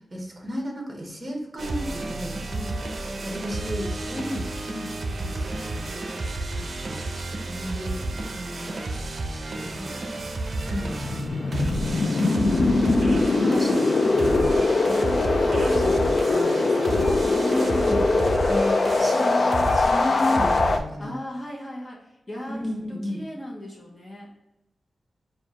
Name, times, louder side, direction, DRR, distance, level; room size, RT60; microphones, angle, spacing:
voice 1, 0.1-2.4 3.2-4.5 5.3-5.8 6.6-7.0 7.5-8.7 9.6-10.0 10.7-12.6 13.1-13.9 14.1-14.6 15.6-16.0 16.3-17.0 17.3-18.1 18.4-21.1 22.5-23.2, equal, 20° right, 0 dB, 1.2 m, -33 dB
sound 1, 1.6-20.8, right 2 dB, 50° right, 0.6 m, -31 dB
voice 2, 2.5-2.9 4.6-5.0 9.5-10.0 13.2-13.8 14.8-17.3 21.0-24.3, equal, 20° left, -3 dB, 1.1 m, -38 dB
Wind, 10.6-20.8, left 3 dB, 50° left, 0.4 m, -22 dB
4.9 x 2.5 x 3.6 m, 0.95 s
wide cardioid pair, 125°, 0 cm